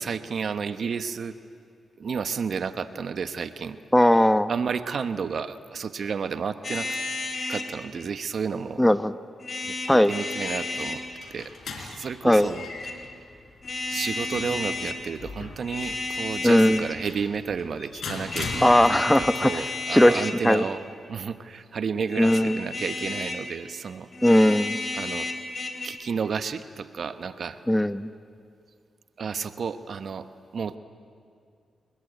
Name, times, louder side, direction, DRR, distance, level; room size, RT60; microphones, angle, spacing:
voice 1, 0.0-1.4 2.0-3.8 4.5-6.9 7.5-8.8 9.6-11.0 11.3-12.7 13.9-20.8 21.1-24.1 24.9-25.3 25.8-27.6 29.2-30.3 30.5-30.8, right 6 dB, 65° right, 11 dB, 1.1 m, -31 dB
voice 2, 3.9-4.5 8.8-9.1 9.9-10.1 12.2-12.5 16.4-16.9 18.6-19.6 19.9-20.6 22.2-22.6 24.2-24.8 27.7-28.1, left 1 dB, 10° left, 12 dB, 1.0 m, -19 dB
sound 1, 6.6-7.7 9.4-11.0 12.5-13.0 13.6-15.0 15.6-16.9 18.3-20.7 22.1-23.5 24.1-25.9, left 2 dB, 50° left, 3.7 m, -32 dB
sound 2, 10.9-19.3, left 4 dB, 70° left, 4.0 m, -40 dB
27.0 x 21.5 x 9.3 m, 2.3 s
cardioid pair, 60°, 0 cm